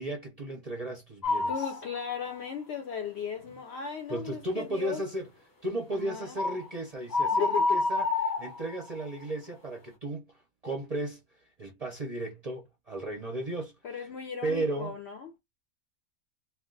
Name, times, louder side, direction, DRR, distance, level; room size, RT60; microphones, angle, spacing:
voice 1, 0.0-1.7 4.1-5.3 5.6-14.1 14.4-14.9, right 1 dB, 45° right, 0.5 m, -35 dB
sound 1, 1.2-1.8 2.3-2.4 6.4-6.6 7.1-9.0, left 3 dB, 30° left, 0.4 m, -28 dB
voice 2, 1.5-5.0 5.9-6.4 7.4-7.8 13.8-15.4, left 6 dB, 65° left, 0.7 m, -36 dB
2.4 x 2.3 x 3.7 m
omnidirectional pair, 1.5 m